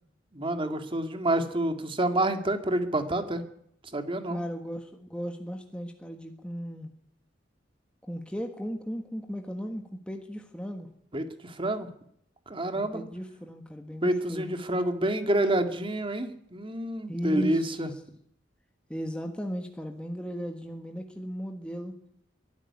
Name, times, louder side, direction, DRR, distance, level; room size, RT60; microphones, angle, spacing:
voice 1, 0.3-3.4 3.9-4.4 11.1-11.9 12.5-13.0 14.0-17.9, right 1 dB, 30° right, 7 dB, 2.2 m, -28 dB
voice 2, 4.3-6.9 8.0-10.9 12.7-14.6 17.1-18.0 18.9-22.0, equal, 5° left, 4 dB, 1.5 m, -36 dB
22.5 x 12.5 x 9.7 m, 0.70 s
head